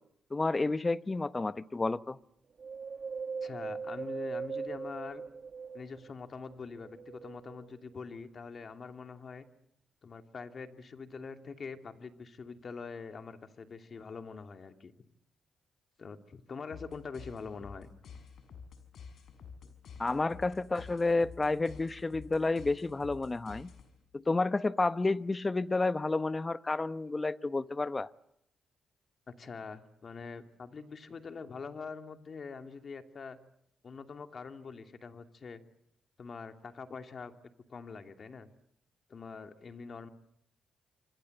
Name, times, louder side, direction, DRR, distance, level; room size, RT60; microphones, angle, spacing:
voice 1, 0.3-2.2 20.0-23.7 24.1-28.1, left 3 dB, 25° left, 15 dB, 1.0 m, -30 dB
Wind, 2.6-6.2 6.7-7.9 8.5-8.6, right 5 dB, 50° right, 1.3 m, -40 dB
voice 2, 3.4-5.2 5.7-9.5 10.0-14.9 16.0-17.9 19.6-19.7 29.3-33.4 33.8-35.6 36.2-37.3 37.7-38.5 39.1-40.1, left 5 dB, 45° left, 7 dB, 2.7 m, -44 dB
sound 1, 16.7-24.1, left 6 dB, 70° left, 5.7 m, -50 dB
27.5 x 26.0 x 8.0 m, 0.75 s
cardioid pair, 80°, 0 cm